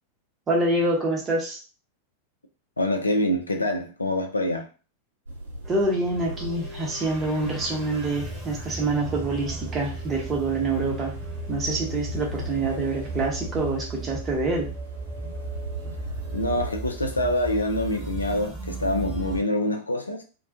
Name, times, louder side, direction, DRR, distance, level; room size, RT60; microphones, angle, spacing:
voice 1, 0.5-1.6 5.7-11.1 11.5-14.7, right 2 dB, 25° right, 0.8 m, -26 dB
voice 2, 2.8-4.7 16.3-20.2, left 1 dB, 80° left, 0.4 m, -25 dB
sound 1, 5.3-16.7, right 1 dB, 75° right, 0.7 m, -39 dB
sound 2, 5.6-19.4, right 3 dB, 5° right, 1.1 m, -36 dB
2.2 x 2.2 x 2.6 m
figure-of-eight pair, 90°, 0 cm